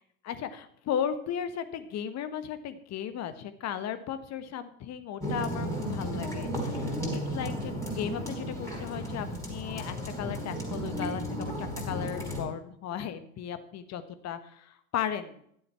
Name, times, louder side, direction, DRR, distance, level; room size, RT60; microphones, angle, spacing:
voice 1, 0.2-15.4, left 9 dB, 40° left, 11 dB, 1.3 m, -36 dB
sound 1, 5.2-12.4, equal, 5° left, 5.1 m, -34 dB
sound 2, 5.7-12.0, right 2 dB, 10° right, 2.6 m, -44 dB
12.5 x 7.9 x 5.8 m, 0.68 s
figure-of-eight pair, 80°, 43 cm